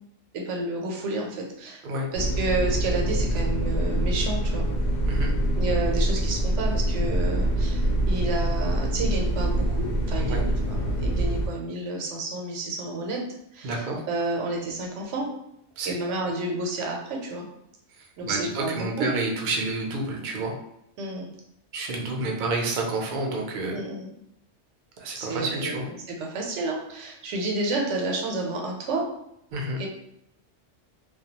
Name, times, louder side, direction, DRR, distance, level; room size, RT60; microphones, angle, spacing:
voice 1, 0.3-1.8 2.1-4.7 5.6-13.2 13.5-15.3 15.8-17.5 18.2-19.1 21.0-21.3 23.7-24.1 25.1-29.0 29.8-29.9, right 2 dB, 80° right, 0 dB, 0.9 m, -30 dB
sound 1, 2.1-11.5, right 1 dB, 85° left, 0.9 m, -25 dB
voice 2, 13.6-14.0 15.8-15.9 18.2-20.6 21.7-23.8 25.0-25.9 29.5-29.8, right 2 dB, 55° right, 0 dB, 0.6 m, -29 dB
2.3 x 2.2 x 2.8 m, 0.76 s
omnidirectional pair, 1.2 m